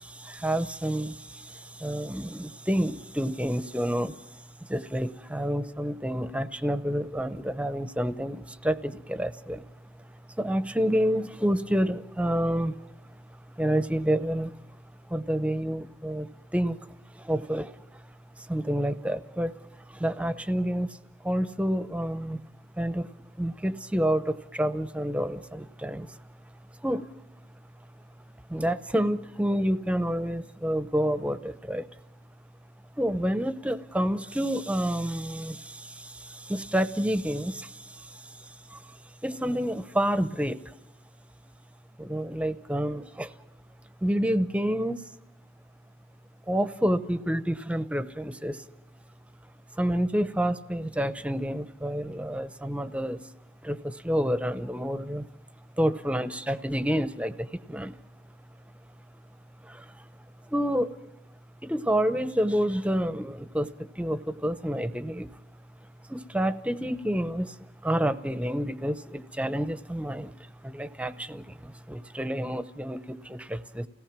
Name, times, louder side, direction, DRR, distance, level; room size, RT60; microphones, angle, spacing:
voice 1, 0.0-4.1 4.7-9.6 10.4-12.7 13.6-14.5 15.1-16.8 17.2-17.7 18.5-19.5 19.9-20.9 21.2-22.4 22.8-23.1 23.4-26.1 26.8-27.1 28.5-31.9 33.0-38.1 38.7-38.8 39.2-40.6 42.0-43.3 44.0-45.0 46.5-48.6 49.8-53.2 53.6-55.3 55.8-57.9 59.6-59.8 60.5-61.0 61.6-65.3 66.1-67.5 67.8-70.3 70.6-73.9, equal, 5° right, 13 dB, 0.7 m, -28 dB
29.0 x 18.0 x 6.0 m, 0.87 s
head